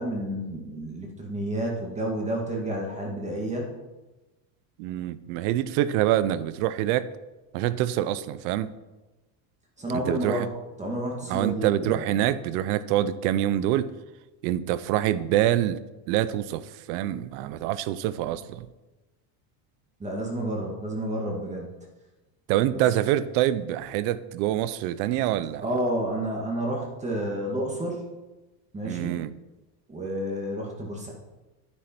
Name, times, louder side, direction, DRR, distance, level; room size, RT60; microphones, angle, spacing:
voice 1, 0.0-3.7 9.8-10.5 10.8-12.2 20.0-21.8 25.6-28.1 28.7-29.2 29.9-31.1, right 1 dB, 15° right, -1 dB, 1.8 m, -30 dB
voice 2, 4.8-7.1 7.5-8.7 9.9-10.5 11.3-13.9 14.4-15.8 16.1-18.7 22.5-25.7 28.8-29.3, right 12 dB, 65° right, 16 dB, 0.8 m, -25 dB
9.9 x 9.6 x 4.5 m, 1.1 s
cardioid pair, 150°, 49 cm